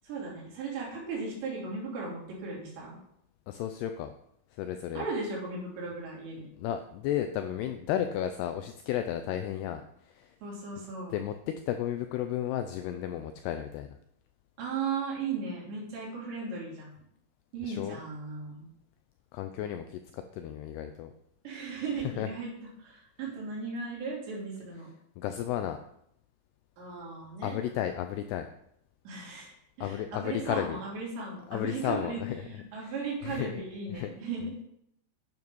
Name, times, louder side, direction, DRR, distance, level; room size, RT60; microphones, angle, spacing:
voice 1, 0.0-3.0 5.0-6.5 10.4-11.2 14.6-16.9 17.5-18.7 21.4-22.5 22.8-24.9 26.8-27.6 29.1-34.5, right 4 dB, 75° right, -4 dB, 5.6 m, -36 dB
voice 2, 3.5-4.1 4.5-5.1 6.6-10.4 11.1-14.0 17.6-18.0 19.3-21.1 22.0-22.3 25.2-25.8 27.4-28.5 29.8-30.8 31.5-32.4 32.8-32.9 33.2-33.6 33.9-34.1, left 10 dB, 80° left, 7 dB, 2.4 m, -33 dB
9.6 x 7.7 x 5.4 m, 0.75 s
omnidirectional pair, 5.1 m